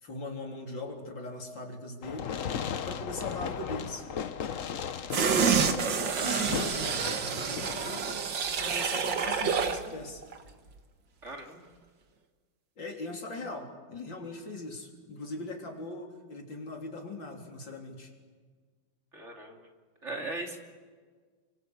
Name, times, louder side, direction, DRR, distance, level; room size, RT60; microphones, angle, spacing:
voice 1, 0.0-2.3 2.8-4.1 5.1-8.2 8.6-10.2 12.8-18.1, left 2 dB, 70° left, 2 dB, 4.3 m, -40 dB
Fireworks, 2.0-8.0, left 7 dB, 50° left, 1.1 m, -37 dB
sound 1, 5.1-9.9 10.2-10.3, right 6 dB, 65° right, 2.3 m, -28 dB
voice 2, 11.2-11.7 19.1-19.7 20.0-20.6, right 2 dB, 35° right, 2 dB, 3.2 m, -39 dB
30.0 x 24.5 x 8.2 m, 1.5 s
omnidirectional pair, 2.1 m